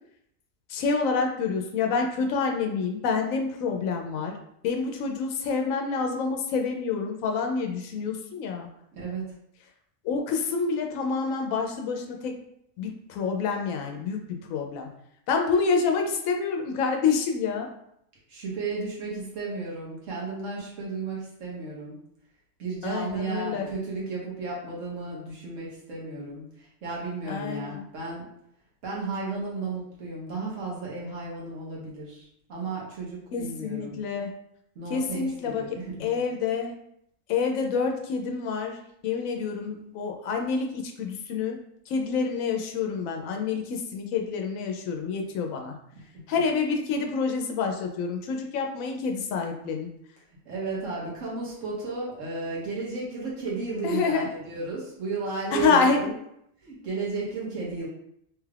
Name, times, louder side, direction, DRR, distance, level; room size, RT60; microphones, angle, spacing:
voice 1, 0.7-4.4 4.6-8.7 10.0-12.4 12.8-14.9 15.3-17.7 22.8-23.7 27.2-27.8 33.3-34.3 34.9-35.6 36.0-36.7 37.3-41.6 41.9-45.8 46.3-49.9 53.8-54.3 55.5-56.2, left 5 dB, 90° left, 3 dB, 1.0 m, -27 dB
voice 2, 8.9-9.2 18.3-22.0 22.6-28.3 28.8-34.0 34.7-36.1 50.4-56.1 56.6-57.9, right 3 dB, 75° right, -5 dB, 1.3 m, -34 dB
3.4 x 2.3 x 3.2 m, 0.73 s
omnidirectional pair, 1.4 m